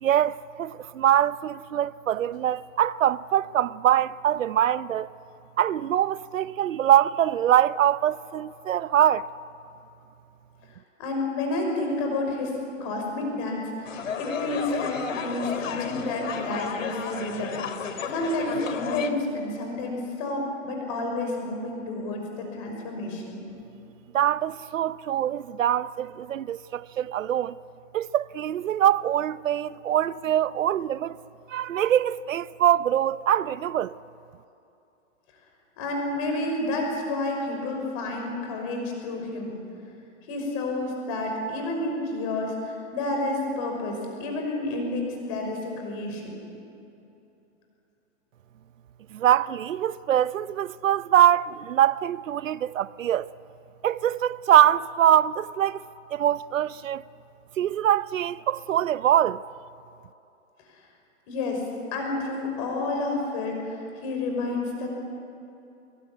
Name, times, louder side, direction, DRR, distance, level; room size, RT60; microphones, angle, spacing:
voice 1, 0.0-5.1 5.6-9.3 24.1-27.6 27.9-31.2 31.5-33.9 49.1-53.3 53.8-55.8 56.1-57.0 57.6-59.4, right 11 dB, 85° right, 0.8 m, -23 dB
voice 2, 11.0-23.4 35.8-39.6 40.3-46.4 61.3-61.6 61.9-64.9, left 2 dB, 25° left, 5.8 m, -30 dB
sound 1, 13.8-19.1, left 6 dB, 85° left, 2.7 m, -32 dB
24.0 x 22.5 x 9.9 m
hypercardioid pair, 175°, 38 cm